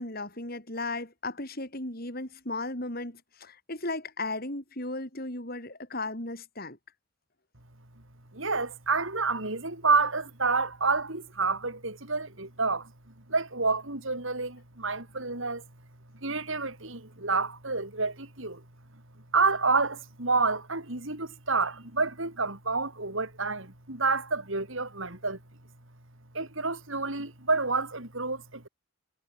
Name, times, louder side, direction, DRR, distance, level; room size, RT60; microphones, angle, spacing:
voice 1, 0.0-6.8, left 2 dB, 45° left, 5.3 m, -35 dB
voice 2, 8.3-12.9 13.3-15.6 16.2-18.6 19.3-25.4 26.3-28.7, right 4 dB, 65° right, 4.3 m, -29 dB
head